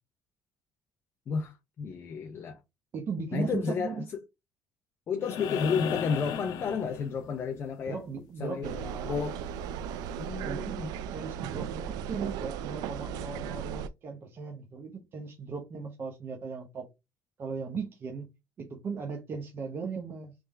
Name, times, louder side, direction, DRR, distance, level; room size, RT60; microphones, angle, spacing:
voice 1, 1.3-2.6 3.3-4.0 5.1-8.0 8.4-9.4 10.2-10.9, left 5 dB, 35° left, 0.6 m, -32 dB
voice 2, 2.9-4.1 7.9-9.2 10.4-16.9 17.4-18.3 18.6-20.4, right 5 dB, 35° right, 0.8 m, -37 dB
sound 1, 5.2-7.5 9.4-9.5, left 8 dB, 80° left, 0.6 m, -36 dB
sound 2, 8.6-13.9, right 8 dB, 85° right, 0.4 m, -36 dB
3.5 x 3.3 x 3.2 m
cardioid pair, 155°, 6 cm